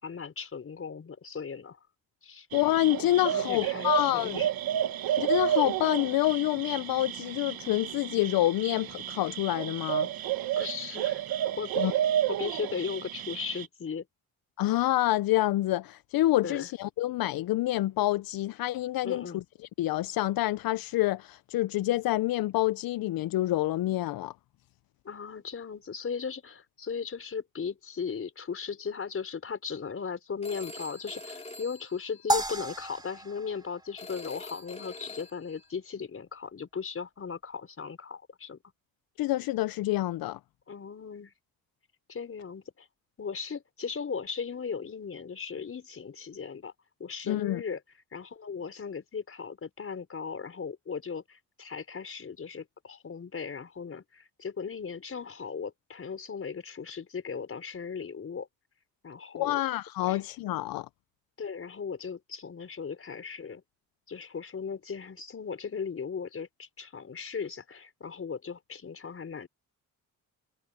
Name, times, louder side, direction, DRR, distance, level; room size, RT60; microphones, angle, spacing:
voice 1, 0.0-1.8 2.2-2.5 3.3-4.5 10.6-12.0 12.3-14.1 16.4-16.7 19.0-19.4 25.0-38.6 40.7-41.3 42.1-42.9 43.2-46.7 47.0-47.8 48.1-58.5 59.0-59.6 60.0-60.2 61.4-63.6 64.1-69.5, left 6 dB, 40° left, 5.5 m, -37 dB
voice 2, 2.5-4.4 5.2-10.1 11.8-11.9 14.6-19.4 19.8-24.3 39.2-40.4 47.3-47.6 59.3-60.9, left 15 dB, 80° left, 0.5 m, -27 dB
sound 1, 2.5-13.7, right 11 dB, 90° right, 1.1 m, -31 dB
Telephone, 30.4-32.8 34.0-35.7, left 2 dB, 20° left, 2.8 m, -45 dB
sound 2, 32.3-34.7, right 1 dB, 10° right, 4.4 m, -33 dB
wide cardioid pair, 150°, 35 cm